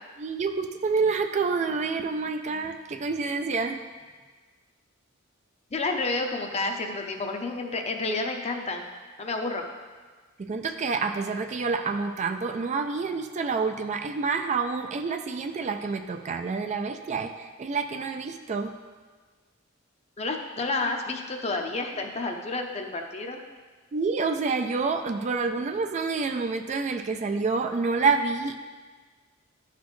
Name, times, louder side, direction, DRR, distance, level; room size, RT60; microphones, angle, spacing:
voice 1, 0.2-3.8 10.4-18.7 23.9-28.6, right 4 dB, 35° right, 6 dB, 0.3 m, -28 dB
voice 2, 5.7-8.9 9.2-9.6 20.2-23.4, left 3 dB, 30° left, 4 dB, 0.6 m, -30 dB
11.0 x 4.1 x 3.1 m, 1.4 s
head